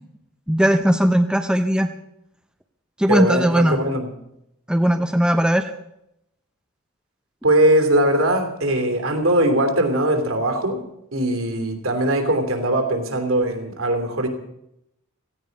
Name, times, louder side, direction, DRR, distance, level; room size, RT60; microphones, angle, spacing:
voice 1, 0.5-1.9 3.0-3.8 4.7-5.7, equal, 5° right, 6 dB, 0.7 m, -18 dB
voice 2, 3.1-4.1 7.4-14.3, right 1 dB, 60° right, 5 dB, 3.1 m, -20 dB
17.0 x 16.0 x 5.3 m, 0.80 s
head